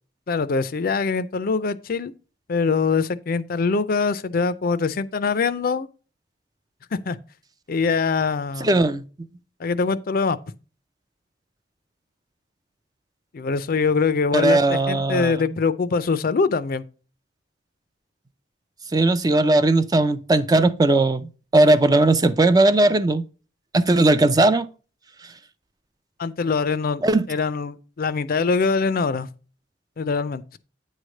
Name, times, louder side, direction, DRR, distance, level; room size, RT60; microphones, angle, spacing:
voice 1, 0.3-2.1 2.5-5.9 6.9-7.2 7.7-8.8 9.6-10.4 13.3-16.8 26.2-27.0 27.3-29.3 30.0-30.4, left 4 dB, 50° left, 0.5 m, -23 dB
voice 2, 8.6-9.0 14.3-15.4 18.9-23.2 23.7-24.7 27.0-27.2, right 2 dB, 20° right, 0.4 m, -18 dB
9.2 x 3.2 x 6.3 m
head